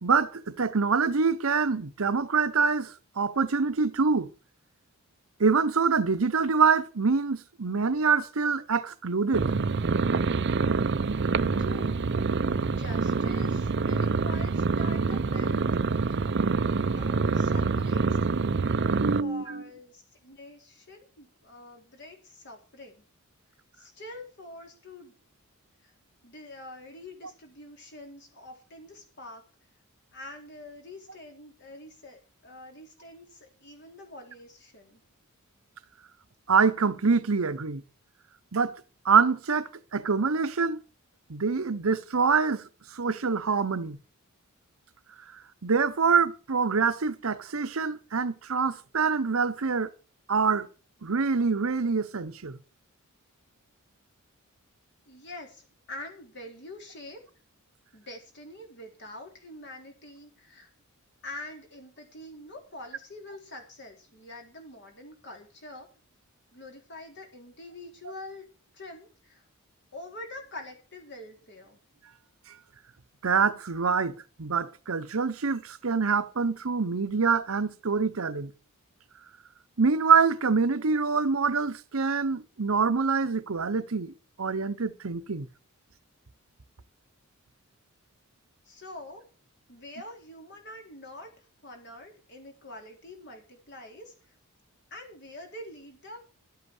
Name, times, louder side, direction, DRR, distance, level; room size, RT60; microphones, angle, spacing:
voice 1, 0.0-4.3 5.4-9.5 18.9-19.6 36.5-37.8 38.5-38.8 39.0-40.8 41.3-42.6 42.9-44.0 45.6-49.9 50.3-50.7 51.0-52.6 73.2-78.5 79.8-85.5, right 5 dB, 85° right, 0.9 m, -25 dB
sound 1, 9.3-19.2, right 4 dB, 55° right, 0.6 m, -26 dB
voice 2, 11.6-12.0 12.7-15.6 17.0-18.1 19.2-23.0 23.8-25.1 25.8-25.9 26.2-29.4 30.1-35.0 55.1-57.2 57.9-60.7 61.2-65.9 66.5-68.5 68.7-69.4 69.9-71.8 88.7-89.2 89.7-91.3 91.6-94.1 94.9-96.2, left 2 dB, 55° left, 3.8 m, -45 dB
12.0 x 8.3 x 7.1 m
head